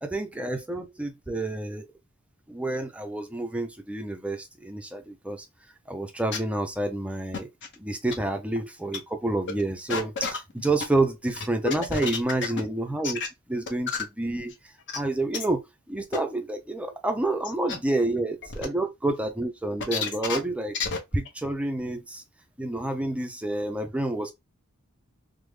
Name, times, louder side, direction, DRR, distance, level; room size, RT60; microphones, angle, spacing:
voice 1, 0.0-1.9 2.5-5.5 5.9-7.5 7.8-13.2 13.5-14.5 14.9-20.8 21.1-22.2 22.6-24.3, right 2 dB, 5° right, 0.4 m, -29 dB
sound 1, 6.3-6.4 7.3-7.8 8.1-8.2 8.6-8.7 8.9-9.0 9.5-9.6 9.9-10.9 11.4-12.6 13.0-13.3 13.7-14.0 14.5-14.6 14.9-15.0 15.3-15.4 16.1-16.2 16.9-17.0 17.4-17.8 18.4-18.7 19.8-20.4 20.7-21.0 21.3-21.4, left 5 dB, 55° left, 0.8 m, -30 dB
3.4 x 2.0 x 3.1 m
head